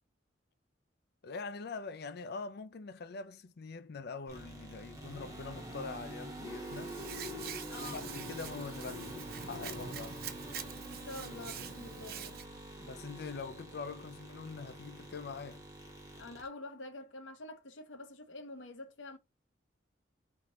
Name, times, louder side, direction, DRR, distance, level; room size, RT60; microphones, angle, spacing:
voice 1, 1.2-7.0 7.7-10.2 12.8-15.6, left 4 dB, 60° left, 0.5 m, -44 dB
sound 1, 4.3-16.5, equal, 20° right, 1.8 m, -46 dB
Hands, 6.6-12.4, right 8 dB, 55° right, 0.6 m, -45 dB
voice 2, 7.7-8.1 10.8-12.4 16.2-19.2, left 2 dB, 90° left, 0.9 m, -47 dB
3.8 x 3.6 x 2.9 m
head